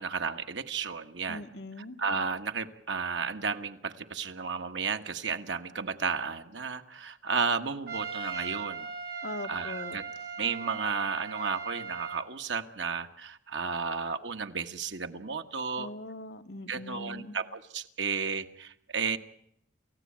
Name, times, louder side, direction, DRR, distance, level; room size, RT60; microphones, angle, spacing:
voice 1, 0.0-1.4 2.0-8.9 9.5-10.0 10.4-15.9 16.7-19.2, right 5 dB, 75° right, 7 dB, 1.5 m, -33 dB
voice 2, 1.3-2.0 9.2-10.0 15.8-17.4, left 2 dB, 60° left, 6 dB, 1.4 m, -41 dB
Trumpet, 7.9-12.3, right 5 dB, 55° right, 2.5 m, -39 dB
29.0 x 15.5 x 8.8 m, 0.75 s
head